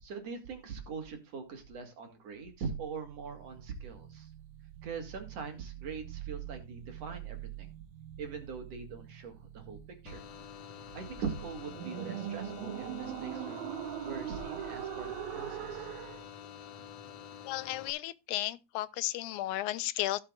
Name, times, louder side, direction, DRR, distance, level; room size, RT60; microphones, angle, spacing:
voice 1, 0.0-4.3 4.8-7.7 8.2-9.8 10.0-10.2 10.9-13.6 14.1-15.9, right 5 dB, 60° right, 3.0 m, -42 dB
sound 1, 3.0-16.2, right 12 dB, 80° right, 2.2 m, -43 dB
sound 2, 10.1-17.9, left 9 dB, 65° left, 2.1 m, -48 dB
voice 2, 17.5-20.2, left 16 dB, 90° left, 2.1 m, -34 dB
16.5 x 6.7 x 2.4 m
omnidirectional pair, 3.4 m